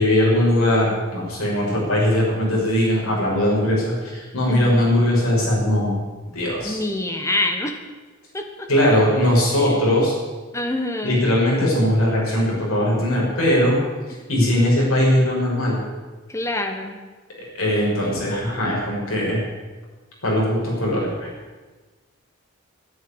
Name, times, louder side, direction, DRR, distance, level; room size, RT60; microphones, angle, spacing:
voice 1, 0.0-6.0 6.3-6.8 8.7-10.1 11.0-13.8 14.3-15.8 17.5-19.4 20.2-21.3, left 1 dB, 85° left, -4 dB, 6.4 m, -20 dB
voice 2, 4.5-4.8 6.6-7.8 8.3-8.4 9.6-10.1 10.5-11.2 16.3-17.0, left 1 dB, 15° left, 4 dB, 1.4 m, -26 dB
10.5 x 10.0 x 9.9 m, 1.3 s
head